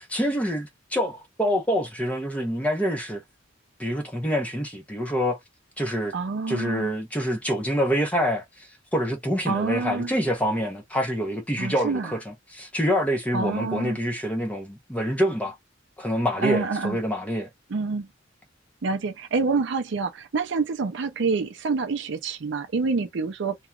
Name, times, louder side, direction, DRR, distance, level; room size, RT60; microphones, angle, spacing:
voice 1, 0.0-3.2 3.8-5.4 5.8-6.1 6.5-15.5 16.0-17.5, equal, 5° left, 0.8 m, -26 dB
voice 2, 6.1-6.9 9.5-10.1 11.6-12.1 13.3-14.0 16.4-17.0 17.7-18.1 18.8-23.6, right 4 dB, 65° right, 0.5 m, -27 dB
2.9 x 2.2 x 2.3 m
head